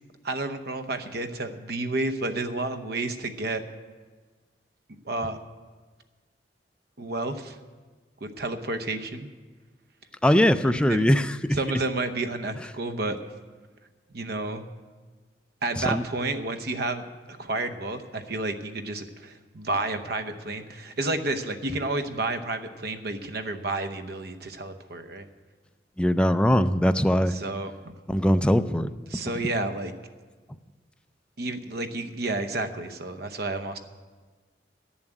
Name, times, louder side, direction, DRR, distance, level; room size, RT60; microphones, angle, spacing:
voice 1, 0.2-3.6 5.1-5.4 7.0-7.6 8.2-9.3 10.9-11.0 11.5-13.2 14.1-14.6 15.6-25.3 27.3-27.7 29.1-29.9 31.4-33.8, right 2 dB, 60° right, 9 dB, 0.9 m, -31 dB
voice 2, 10.2-11.6 15.8-16.0 26.0-27.3 28.1-28.9, equal, 5° left, 10 dB, 0.3 m, -21 dB
12.0 x 7.2 x 9.0 m, 1.4 s
head